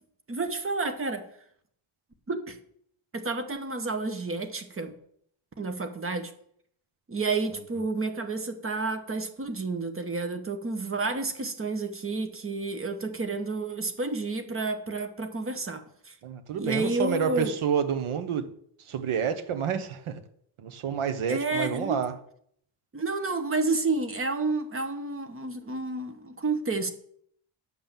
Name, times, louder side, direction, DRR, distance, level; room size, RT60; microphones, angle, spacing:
voice 1, 0.3-1.3 2.3-2.6 3.1-4.9 5.6-6.3 7.1-16.2 16.6-17.5 21.3-22.0 22.9-26.9, right 3 dB, 25° right, 1.1 m, -30 dB
voice 2, 16.2-18.5 18.8-20.2 20.6-22.2, right 7 dB, 80° right, 1.3 m, -29 dB
9.9 x 5.6 x 7.4 m
wide cardioid pair, 170°, 49 cm